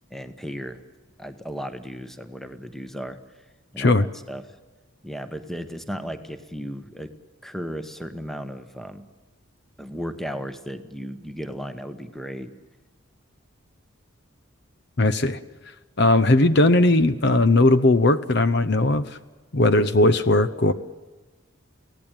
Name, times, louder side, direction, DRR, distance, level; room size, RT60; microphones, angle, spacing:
voice 1, 0.1-0.8 1.2-3.2 3.7-4.0 4.3-4.4 5.0-7.1 7.4-9.0 9.8-12.5, equal, ahead, 10 dB, 1.1 m, -35 dB
voice 2, 15.0-15.4 16.0-19.2 19.5-20.7, left 2 dB, 55° left, 13 dB, 0.9 m, -18 dB
24.0 x 17.0 x 9.0 m, 1.2 s
head